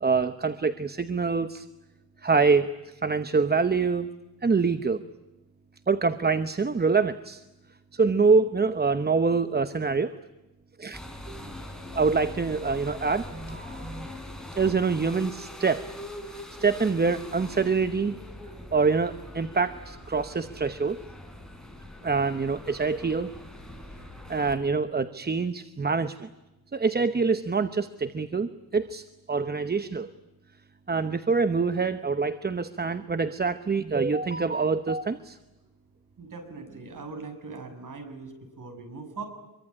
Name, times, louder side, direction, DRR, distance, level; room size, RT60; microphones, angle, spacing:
voice 1, 0.0-1.7 2.2-4.1 4.4-5.1 5.9-7.4 7.9-10.2 10.8-11.0 11.3-14.1 14.5-15.9 16.3-18.2 18.7-21.0 22.0-23.3 24.3-26.3 26.7-30.1 30.9-35.4, right 4 dB, 25° right, 11 dB, 0.9 m, -25 dB
sound 1, 10.9-24.5, left 1 dB, ahead, 5.1 m, -42 dB
voice 2, 36.2-39.2, right 4 dB, 55° right, 6 dB, 6.9 m, -40 dB
25.5 x 23.5 x 9.8 m, 1.0 s
wide cardioid pair, 135°, 38 cm